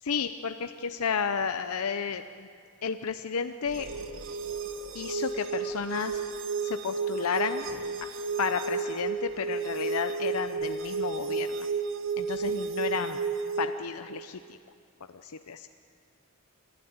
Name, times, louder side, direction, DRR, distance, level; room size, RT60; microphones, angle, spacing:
voice 1, 0.0-2.5 2.8-3.9 4.9-6.2 6.6-7.7 8.4-11.7 12.2-13.2 13.6-14.6 15.2-15.7, left 6 dB, 85° left, 8 dB, 0.6 m, -32 dB
sound 1, 3.7-13.7, right 5 dB, 60° right, 1.4 m, -32 dB
28.0 x 12.5 x 9.4 m, 2.3 s
head